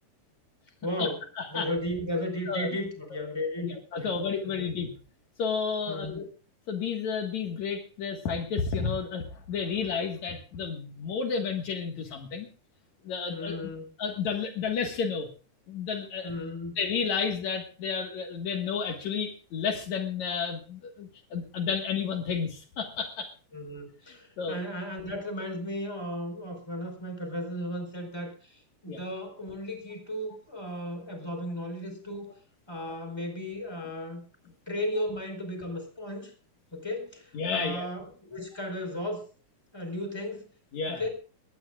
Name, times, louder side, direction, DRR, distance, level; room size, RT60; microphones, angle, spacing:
voice 1, 0.8-1.2 1.5-3.7 4.0-4.1 4.5-4.6 5.9-6.2 13.3-13.9 16.2-16.8 23.5-32.3 32.7-34.2 34.7-36.3 36.7-39.2 39.7-40.5 40.9-41.1, left 1 dB, 10° left, 4 dB, 4.5 m, -35 dB
voice 2, 1.4-1.7 2.5-2.8 3.6-4.9 5.4-6.3 6.7-12.5 13.0-13.6 14.0-15.3 15.7-16.3 16.8-23.3 24.1-24.6 28.9-29.0 37.3-37.9 40.7-41.0, left 5 dB, 65° left, 4 dB, 3.0 m, -31 dB
22.0 x 17.0 x 2.5 m, 0.37 s
omnidirectional pair, 3.5 m